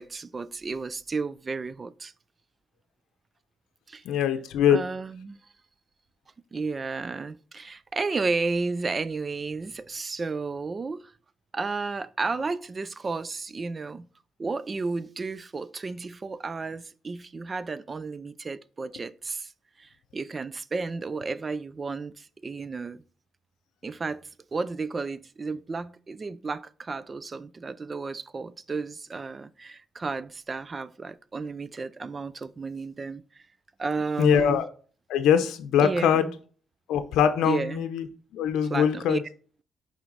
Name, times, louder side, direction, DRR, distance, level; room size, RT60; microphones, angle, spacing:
voice 1, 0.0-2.1 3.9-4.0 4.7-5.4 6.5-11.1 11.5-14.1 14.4-19.5 19.8-23.0 23.8-24.2 24.5-33.4 33.8-34.6 35.8-36.4 37.4-37.9 38.7-39.2, right 4 dB, 30° right, 0.4 m, -32 dB
voice 2, 4.0-4.8 34.2-34.7 35.1-36.3 36.9-38.0 38.3-39.2, left 8 dB, 85° left, 0.6 m, -22 dB
5.7 x 4.4 x 4.0 m
cardioid pair, 90°, 0 cm